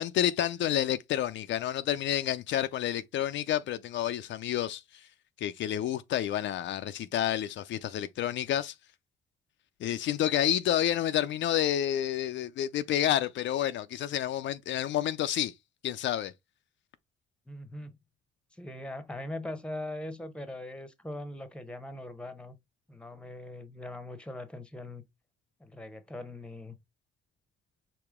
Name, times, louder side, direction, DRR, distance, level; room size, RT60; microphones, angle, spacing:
voice 1, 0.0-4.8 5.4-8.7 9.8-15.5 15.8-16.3, left 11 dB, 70° left, 0.5 m, -29 dB
voice 2, 17.5-18.0 18.5-22.6 22.9-25.0 25.6-26.7, left 1 dB, 5° left, 0.9 m, -41 dB
4.9 x 3.0 x 3.5 m
cardioid pair, 90°, 20 cm